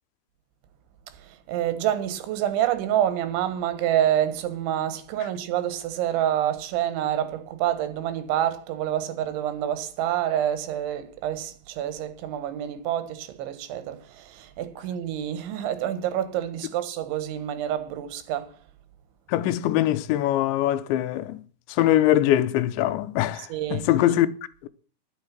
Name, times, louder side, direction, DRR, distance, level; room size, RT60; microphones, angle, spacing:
voice 1, 1.2-18.5 23.4-23.9, right 11 dB, 90° right, 3.7 m, -27 dB
voice 2, 19.3-21.4 21.7-24.3 24.6-24.7, left 13 dB, 85° left, 3.1 m, -22 dB
11.5 x 11.5 x 5.9 m
omnidirectional pair, 5.2 m